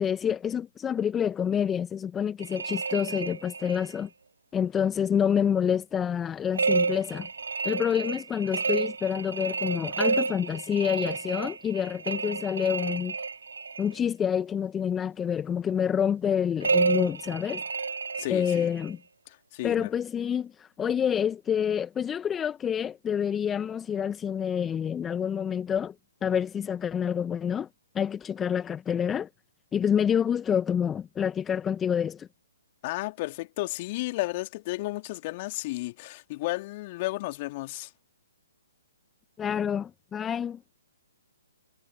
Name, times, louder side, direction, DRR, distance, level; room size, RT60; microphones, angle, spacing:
voice 1, 0.0-4.1 4.5-7.3 7.6-13.1 13.8-17.6 18.3-19.0 19.6-25.9 26.2-27.7 27.9-29.3 29.7-32.3 39.4-40.6, left 8 dB, 15° left, 1.3 m, -27 dB
sound 1, 2.4-4.0 6.5-13.9 16.6-18.9, right 4 dB, 70° right, 0.9 m, -30 dB
voice 2, 18.2-18.7 19.3-19.9 32.8-37.9, left 20 dB, 35° left, 2.8 m, -33 dB
figure-of-eight pair, 130°, 0 cm